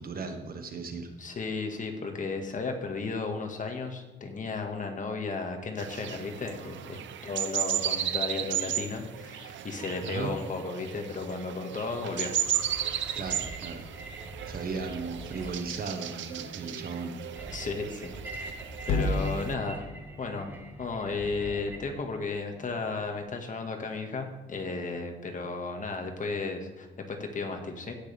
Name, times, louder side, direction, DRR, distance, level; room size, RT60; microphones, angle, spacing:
voice 1, 0.0-1.1 10.0-10.3 13.1-13.8 14.4-17.2, right 4 dB, 50° right, 6 dB, 1.4 m, -36 dB
voice 2, 1.2-12.4 17.5-18.1 18.8-19.9 20.2-20.5 20.8-27.9, left 4 dB, 40° left, 3 dB, 1.9 m, -34 dB
sound 1, 5.8-19.5, right 10 dB, 70° right, 0.8 m, -35 dB
sound 2, 12.4-21.9, right 2 dB, 10° right, 1.7 m, -44 dB
sound 3, 18.8-23.2, left 2 dB, 85° left, 1.7 m, -35 dB
16.5 x 6.5 x 3.5 m, 1.1 s
cardioid pair, 90°, 20 cm